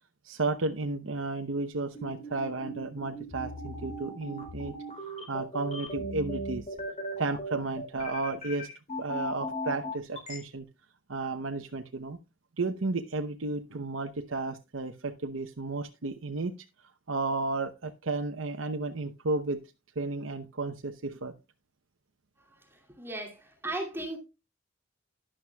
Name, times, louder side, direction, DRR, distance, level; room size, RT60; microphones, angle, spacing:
voice 1, 0.2-4.8 5.3-6.7 7.2-8.7 9.0-10.7 11.1-12.2 12.6-16.5 17.1-19.6 20.0-21.3, right 3 dB, 80° right, 0.8 m, -33 dB
sound 1, 1.9-10.4, equal, 35° left, 3.5 m, -37 dB
voice 2, 22.5-24.2, right 2 dB, 10° right, 2.5 m, -37 dB
12.0 x 11.0 x 2.3 m
head